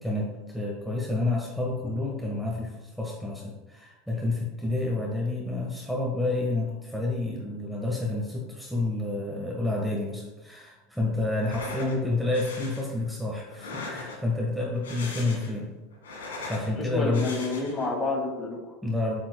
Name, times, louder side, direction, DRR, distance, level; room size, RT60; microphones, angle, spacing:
voice 1, 0.0-15.7 16.2-17.3 18.8-19.2, left 2 dB, ahead, -3 dB, 1.4 m, -29 dB
sound 1, 11.3-12.0 12.3-12.8 13.5-14.4 14.7-15.6 15.9-16.7 17.1-17.9, left 3 dB, 85° left, 1.6 m, -39 dB
voice 2, 11.8-12.1 16.8-18.7, left 3 dB, 30° left, 0 dB, 2.3 m, -30 dB
7.4 x 7.3 x 2.3 m, 1.1 s
hypercardioid pair, 90°, 0 cm